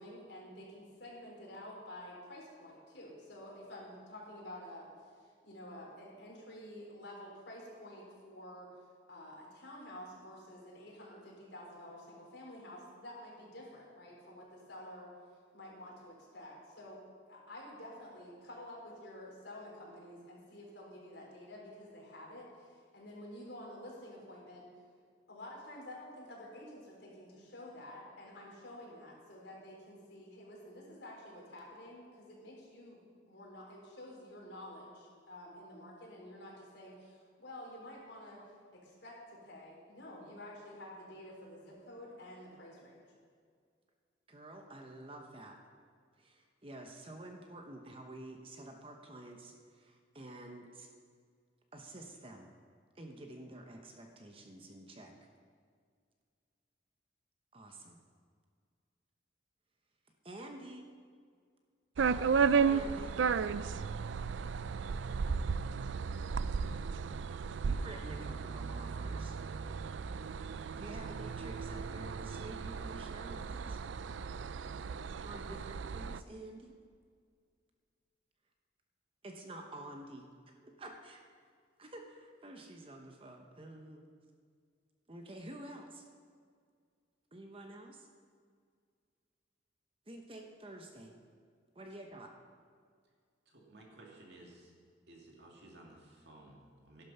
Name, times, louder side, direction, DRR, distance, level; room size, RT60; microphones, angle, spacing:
voice 1, 0.0-4.9 5.4-8.7 9.1-15.1 15.5-17.0 17.3-24.7 25.3-38.4 38.7-43.1, left 1 dB, 65° left, -3 dB, 4.0 m, -50 dB
voice 2, 44.3-45.6 46.2-50.9 51.7-52.5 52.9-55.1 57.5-58.0 60.2-60.9 62.3-63.2 67.6-69.4 70.8-73.8 75.2-76.8 79.2-81.2 81.8-84.1 85.1-86.0 87.3-88.1 90.1-91.1 91.7-92.3, right 1 dB, 30° right, 3 dB, 0.9 m, -49 dB
sound 1, 62.0-76.2, right 5 dB, 80° right, 0.4 m, -34 dB
voice 3, 93.5-94.7 95.1-97.0, right 2 dB, 60° right, -1 dB, 2.4 m, -56 dB
13.0 x 11.5 x 5.5 m, 2.1 s
head